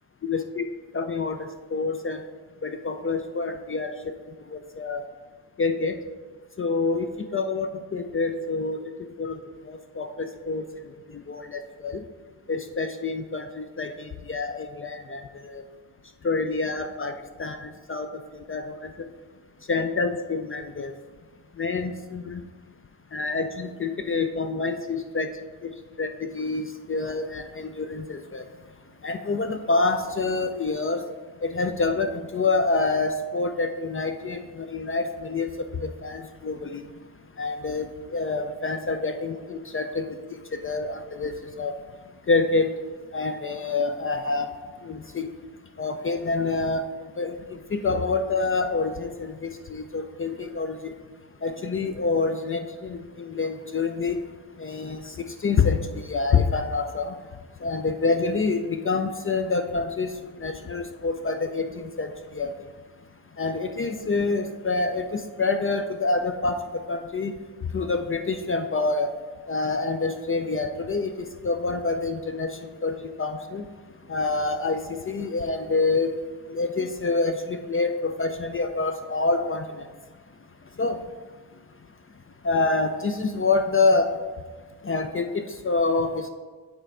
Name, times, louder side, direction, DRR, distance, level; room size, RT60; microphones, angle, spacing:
voice 1, 0.2-0.6 0.9-1.4 1.7-2.2 2.6-3.9 4.5-5.0 5.6-6.0 6.6-8.8 9.2-9.4 9.7-10.6 11.3-12.0 12.5-15.6 16.2-18.1 18.5-18.8 19.7-20.9 21.6-22.4 23.1-25.3 25.6-25.7 26.0-28.4 29.0-31.0 31.4-35.5 35.8-36.8 37.4-37.9 38.1-40.1 40.6-41.7 42.3-42.7 43.1-44.5 44.8-45.3 45.8-46.8 47.2-50.7 51.4-54.2 54.6-57.1 57.6-60.1 60.4-62.5 63.4-67.3 67.7-69.1 69.5-71.1 71.4-72.5 72.8-73.6 74.1-76.1 76.5-79.6 80.8-81.0 82.4-84.1 84.8-86.3, left 3 dB, 30° left, 7 dB, 0.4 m, -27 dB
8.8 x 3.3 x 4.8 m, 1.4 s
cardioid pair, 80°, 44 cm